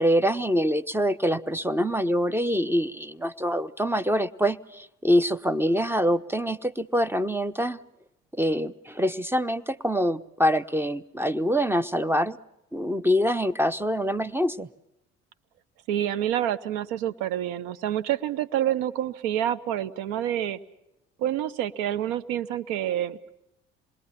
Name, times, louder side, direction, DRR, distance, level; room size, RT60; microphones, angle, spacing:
voice 1, 0.0-7.8 8.4-12.4 12.7-14.7, equal, 5° right, 15 dB, 0.8 m, -25 dB
voice 2, 15.9-20.6 21.2-23.2, right 11 dB, 80° right, 15 dB, 1.0 m, -27 dB
27.0 x 21.5 x 5.8 m, 0.88 s
hypercardioid pair, 60°, 33 cm